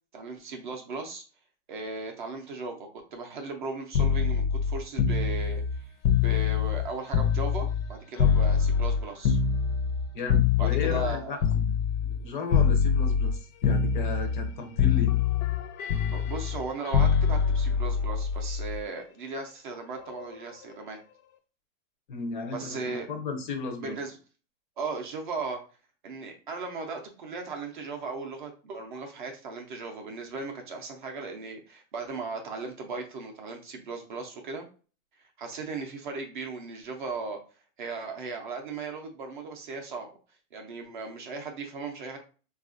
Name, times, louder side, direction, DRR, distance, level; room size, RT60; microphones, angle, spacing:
voice 1, 0.1-1.2 1.7-5.9 6.2-9.4 10.6-11.4 16.0-21.0 22.5-23.1 23.8-24.2 24.8-25.6 26.0-34.7 35.4-37.4 37.8-40.1 40.5-42.2, right 4 dB, 40° right, 3 dB, 0.4 m, -37 dB
sound 1, 3.9-7.9 8.2-12.2 12.5-13.4 13.6-14.5 14.8-18.8 20.0-20.2, left 7 dB, 80° left, 0.7 m, -24 dB
voice 2, 10.1-15.2 22.1-24.0, left 4 dB, 40° left, 5 dB, 0.4 m, -35 dB
3.4 x 2.3 x 2.4 m, 0.37 s
supercardioid pair, 170°, 40 cm